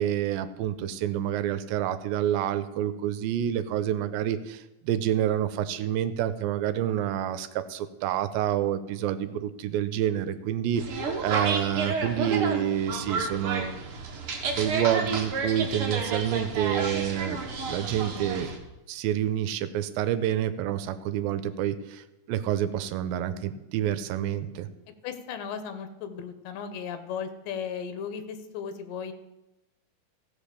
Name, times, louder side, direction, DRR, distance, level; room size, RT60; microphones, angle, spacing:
voice 1, 0.0-13.7 14.6-17.4 17.7-18.5 18.9-24.7, right 11 dB, 85° right, 11 dB, 2.4 m, -28 dB
sound 1, 10.8-18.6, right 4 dB, 60° right, 1.5 m, -31 dB
voice 2, 25.0-29.1, left 7 dB, 70° left, 10 dB, 2.3 m, -36 dB
15.5 x 5.3 x 6.7 m, 1.0 s
omnidirectional pair, 4.3 m